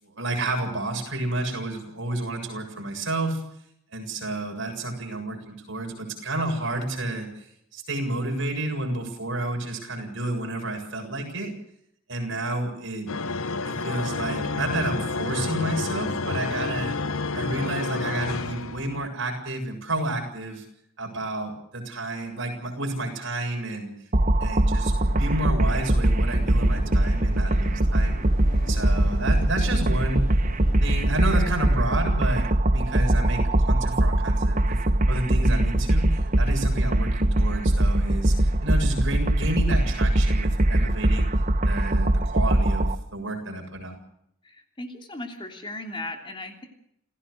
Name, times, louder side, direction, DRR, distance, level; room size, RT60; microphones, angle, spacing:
voice 1, 0.0-3.4 3.9-7.5 7.7-11.5 12.1-13.1 13.6-17.0 17.3-20.6 21.0-23.9 24.4-28.2 28.7-30.3 30.8-41.3 41.7-44.0, right 2 dB, 60° right, 3 dB, 7.5 m, -30 dB
sound 1, 13.1-19.1, left 3 dB, 85° left, 1.0 m, -30 dB
sound 2, 24.1-42.9, right 1 dB, 40° right, 1.1 m, -22 dB
sound 3, 25.0-31.3, equal, 50° left, 5.6 m, -40 dB
voice 2, 44.4-46.7, left 2 dB, 25° left, 4 dB, 3.2 m, -37 dB
28.5 x 16.5 x 6.6 m, 0.73 s
head